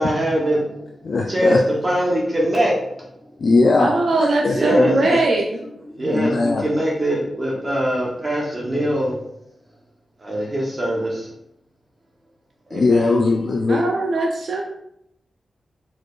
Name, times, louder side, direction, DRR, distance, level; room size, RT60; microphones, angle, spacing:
voice 1, 0.0-0.9 1.3-3.1 4.5-5.0 5.9-9.2 10.2-11.3 12.7-13.2, equal, 25° right, -3 dB, 0.9 m, -22 dB
voice 2, 1.0-1.6 3.4-4.0 4.4-5.2 6.0-6.7 12.7-13.9, left 3 dB, 50° left, 2 dB, 0.3 m, -19 dB
voice 3, 3.8-5.6 13.7-14.6, right 2 dB, 55° right, 0 dB, 0.5 m, -20 dB
4.6 x 4.4 x 2.4 m, 0.80 s
wide cardioid pair, 160°, 0 cm